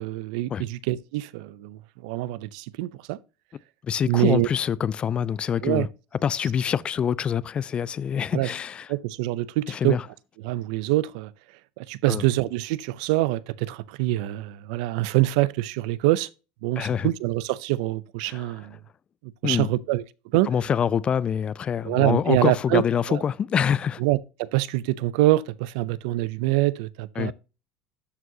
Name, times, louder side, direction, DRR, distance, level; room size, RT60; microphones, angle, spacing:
voice 1, 0.0-3.2 4.1-4.5 5.6-5.9 8.3-8.5 8.9-10.0 10.4-11.3 11.8-16.3 16.6-18.8 19.4-20.0 20.3-20.5 21.8-22.8 23.1-23.2 24.0-27.3, right 17 dB, 85° right, 0.5 m, -25 dB
voice 2, 3.8-5.9 6.2-8.9 9.7-10.0 12.1-12.2 16.8-17.1 18.3-18.5 19.4-19.7 20.5-24.0 27.2-27.3, left 8 dB, 25° left, 0.3 m, -25 dB
12.5 x 4.6 x 2.8 m
cardioid pair, 145°, 4 cm